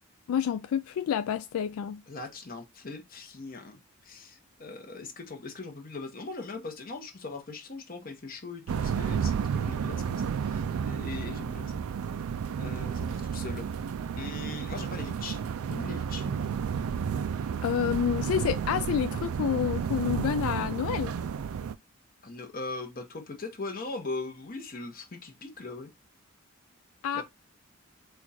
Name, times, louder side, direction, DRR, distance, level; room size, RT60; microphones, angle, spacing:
voice 1, 0.3-2.0 17.6-21.1 27.0-27.2, left 9 dB, 80° left, 0.3 m, -29 dB
voice 2, 2.1-11.8 12.6-13.6 14.1-15.4 15.7-16.3 22.2-25.9 27.1-27.2, left 3 dB, 45° left, 0.9 m, -40 dB
sound 1, 8.7-21.8, right 7 dB, 85° right, 0.3 m, -32 dB
4.4 x 2.4 x 4.1 m
head